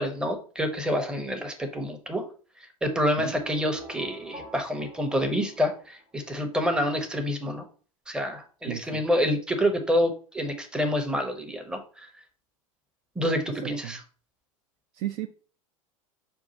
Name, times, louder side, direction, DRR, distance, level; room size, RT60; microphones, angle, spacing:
voice 1, 0.0-2.2 2.8-7.6 8.1-12.1 13.2-14.0, equal, 5° right, 0.7 m, -27 dB
sound 1, 3.2-6.3, right 2 dB, 25° right, 0.9 m, -45 dB
voice 2, 8.7-9.0 13.6-14.0 15.0-15.3, right 13 dB, 45° right, 0.4 m, -34 dB
5.3 x 2.4 x 4.0 m
figure-of-eight pair, 80°, 18 cm